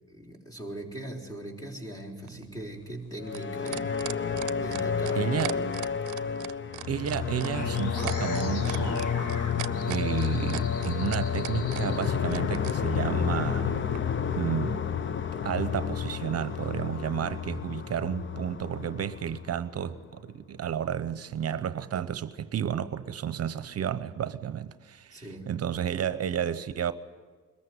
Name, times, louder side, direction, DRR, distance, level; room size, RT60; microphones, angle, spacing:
voice 1, 0.1-3.9 4.6-5.8 25.1-25.5, right 1 dB, 10° left, 3.9 m, -40 dB
sound 1, 2.2-12.8 13.9-14.0, right 16 dB, 80° right, 0.6 m, -38 dB
sound 2, 3.2-20.0, left 7 dB, 40° left, 0.9 m, -30 dB
voice 2, 5.1-5.6 6.9-9.0 9.9-13.8 14.3-14.9 15.4-26.9, right 9 dB, 55° right, 0.8 m, -32 dB
sound 3, 7.5-12.0, left 2 dB, 90° left, 4.4 m, -40 dB
22.0 x 14.5 x 9.5 m
cardioid pair, 90°, 30 cm